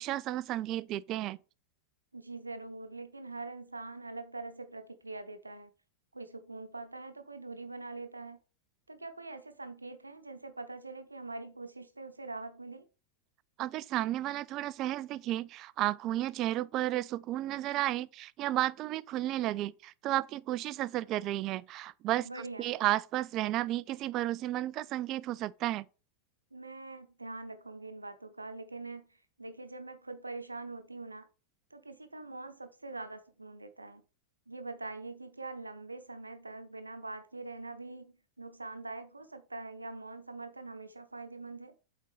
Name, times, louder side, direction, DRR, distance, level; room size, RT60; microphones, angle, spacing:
voice 1, 0.0-1.4 13.6-22.3 22.6-25.9, right 14 dB, 35° right, 0.3 m, -33 dB
voice 2, 2.1-5.7 6.1-8.4 8.9-12.8 22.2-22.8 26.5-31.3 31.7-34.0 34.5-41.7, right 3 dB, 80° right, 0.8 m, -44 dB
8.2 x 3.9 x 5.0 m
figure-of-eight pair, 90°, 0 cm